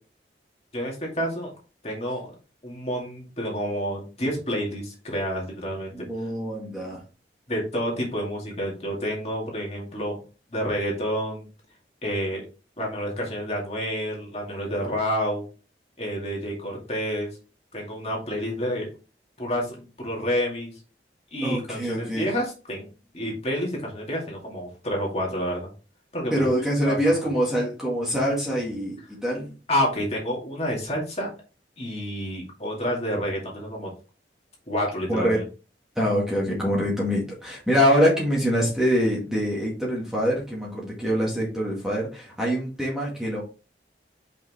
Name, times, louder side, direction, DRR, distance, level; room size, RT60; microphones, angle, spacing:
voice 1, 0.7-1.5 1.8-2.2 2.6-5.9 7.5-10.2 10.5-11.5 12.0-12.4 12.8-15.4 16.0-17.3 17.7-18.9 19.4-20.7 21.3-22.9 23.1-25.7 26.1-26.5 26.8-27.0 29.7-31.3 31.8-33.9 34.7-35.4, equal, 35° left, -1 dB, 2.4 m, -29 dB
voice 2, 5.9-7.0 21.4-22.3 26.3-29.5 35.1-35.4 36.0-43.4, equal, 5° right, -5 dB, 1.9 m, -24 dB
5.6 x 5.4 x 3.5 m, 0.33 s
head